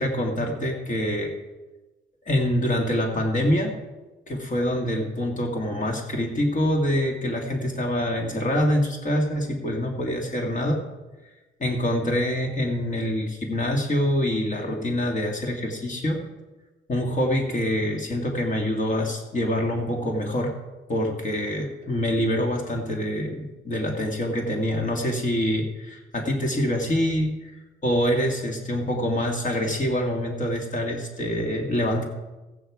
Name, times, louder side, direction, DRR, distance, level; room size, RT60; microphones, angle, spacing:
voice 1, 0.0-1.3 2.3-3.8 4.3-10.8 11.6-16.2 16.9-20.5 20.9-27.5 27.8-32.0, left 1 dB, 40° left, 2 dB, 2.1 m, -25 dB
15.0 x 8.9 x 4.8 m, 1.1 s
cardioid pair, 90°, 20 cm